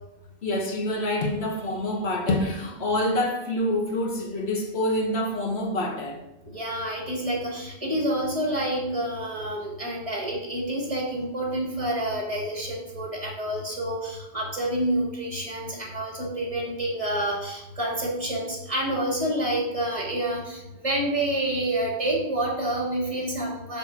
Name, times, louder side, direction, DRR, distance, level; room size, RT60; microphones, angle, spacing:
voice 1, 0.4-6.3, left 1 dB, 80° left, 1.5 m, -26 dB
voice 2, 6.5-23.8, right 1 dB, 30° right, 2.4 m, -28 dB
6.6 x 6.6 x 4.2 m
omnidirectional pair, 1.1 m